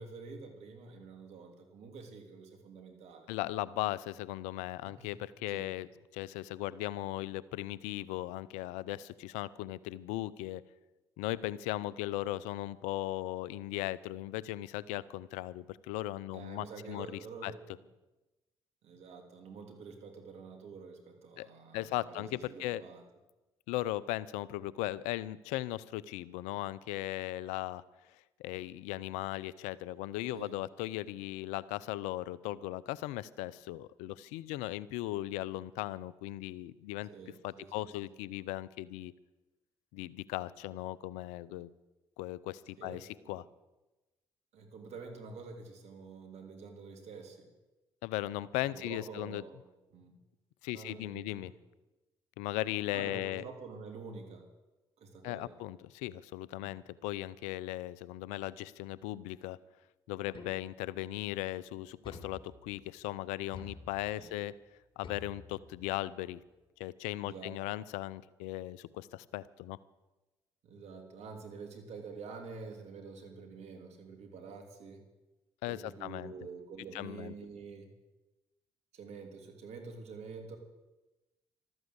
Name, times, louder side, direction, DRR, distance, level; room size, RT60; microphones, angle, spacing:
voice 1, 0.0-3.3 4.8-5.1 5.5-5.7 16.3-17.6 18.8-23.0 30.3-30.5 37.1-38.1 42.8-43.4 44.5-47.5 48.7-49.7 49.9-50.2 50.7-51.6 52.9-54.5 55.0-55.6 56.6-56.8 64.2-64.4 67.2-67.5 70.6-75.0 75.7-77.9 78.9-80.6, right 4 dB, 65° right, 4 dB, 3.2 m, -48 dB
voice 2, 3.3-10.6 11.2-17.5 21.4-21.5 21.7-22.8 23.7-27.8 28.4-37.1 37.4-39.1 39.9-41.7 42.2-43.4 48.0-49.4 50.6-51.5 52.4-53.4 55.2-59.6 60.1-64.5 65.0-66.4 66.8-69.8 75.6-76.3 76.9-77.3, left 15 dB, 80° left, 20 dB, 0.6 m, -38 dB
sound 1, 60.3-61.0 62.0-62.9 63.5-64.3 65.0-66.0, left 4 dB, 45° left, 3.9 m, -50 dB
14.0 x 13.0 x 8.1 m, 1.1 s
hypercardioid pair, 50°, 12 cm